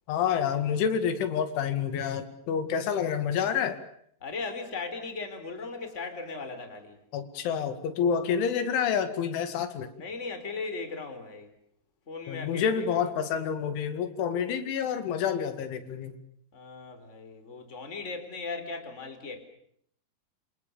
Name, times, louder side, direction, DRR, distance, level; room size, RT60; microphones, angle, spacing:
voice 1, 0.1-3.8 7.1-9.9 12.3-16.1, left 7 dB, 80° left, 9 dB, 4.5 m, -28 dB
voice 2, 4.2-7.0 10.0-11.5 12.1-12.9 16.5-19.5, left 4 dB, 15° left, 8 dB, 3.8 m, -37 dB
28.0 x 28.0 x 7.0 m, 0.67 s
omnidirectional pair, 5.4 m